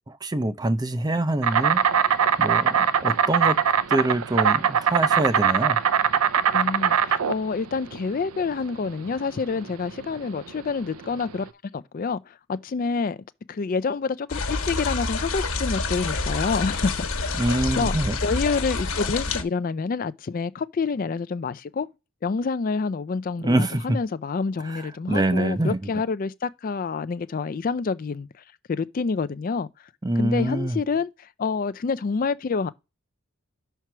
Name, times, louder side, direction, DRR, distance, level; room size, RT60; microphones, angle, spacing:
voice 1, 0.1-1.8 2.4-3.6 3.9-5.8 17.4-18.2 23.4-24.0 24.6-25.9 30.0-30.8, right 1 dB, 20° right, 0.5 m, -25 dB
Insect, 1.4-11.4, right 7 dB, 80° right, 0.5 m, -22 dB
voice 2, 6.5-17.3 17.8-18.0 18.2-21.9 22.2-28.3 28.7-29.7 30.2-32.7, left 4 dB, 40° left, 0.3 m, -28 dB
sound 1, 14.3-19.4, left 3 dB, 65° left, 1.2 m, -27 dB
5.7 x 4.5 x 6.0 m
head